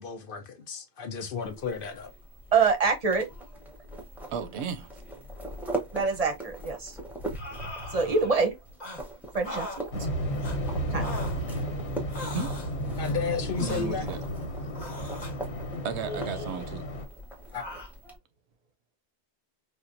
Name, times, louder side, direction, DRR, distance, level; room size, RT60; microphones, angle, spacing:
voice 1, 0.0-2.1 13.0-14.0 17.5-17.7, left 6 dB, 60° left, 0.7 m, -33 dB
sound 1, 1.4-18.2, right 1 dB, ahead, 0.7 m, -41 dB
voice 2, 2.5-3.3 5.9-7.0 7.9-8.6 9.3-10.1 10.9-11.1, right 4 dB, 40° right, 0.7 m, -25 dB
voice 3, 4.3-4.9 11.5-11.7 12.3-12.5 13.6-14.2 15.8-16.9, right 6 dB, 80° right, 0.9 m, -34 dB
sound 2, 7.3-8.4 8.8-9.0 9.4-9.8 10.4-10.6 11.0-11.4 12.1-12.7 13.5-13.9 14.8-15.3 16.1-16.8 17.6-17.9, left 1 dB, 40° left, 1.0 m, -40 dB
Waves surf, 9.9-17.1, equal, 80° left, 1.2 m, -33 dB
4.4 x 2.1 x 2.5 m
omnidirectional pair, 1.1 m